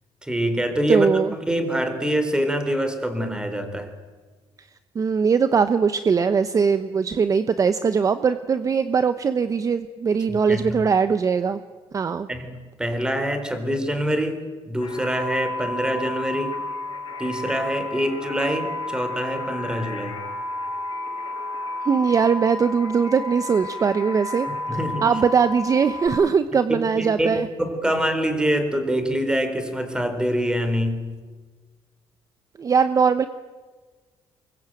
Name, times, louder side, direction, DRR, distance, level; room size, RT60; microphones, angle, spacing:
voice 1, 0.2-1.1 1.5-3.9 10.3-10.7 12.3-16.6 17.2-20.2 24.5-25.1 27.0-31.2, equal, 10° right, 8 dB, 4.0 m, -25 dB
voice 2, 0.9-1.3 4.9-11.6 11.9-12.3 21.8-24.5 25.0-27.5 32.6-33.3, right 6 dB, 35° right, 11 dB, 1.0 m, -21 dB
sound 1, 14.8-26.1, left 2 dB, 55° left, 6.0 m, -32 dB
24.0 x 22.5 x 9.2 m, 1.4 s
cardioid pair, 115°, 10 cm